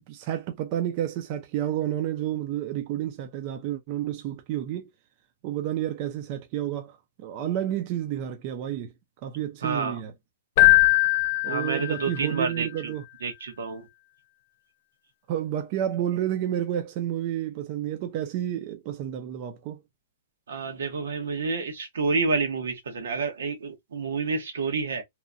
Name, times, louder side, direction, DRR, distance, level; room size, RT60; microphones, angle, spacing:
voice 1, 0.1-4.9 5.4-8.9 9.2-10.1 11.4-13.0 15.3-19.8, right 11 dB, 35° right, 0.4 m, -30 dB
voice 2, 9.6-10.0 11.4-12.9 13.2-13.9 20.5-25.0, right 4 dB, 90° right, 1.1 m, -29 dB
Keyboard (musical), 10.6-12.4, left 22 dB, 40° left, 0.3 m, -20 dB
2.9 x 2.2 x 2.5 m
hypercardioid pair, 165°, 0 cm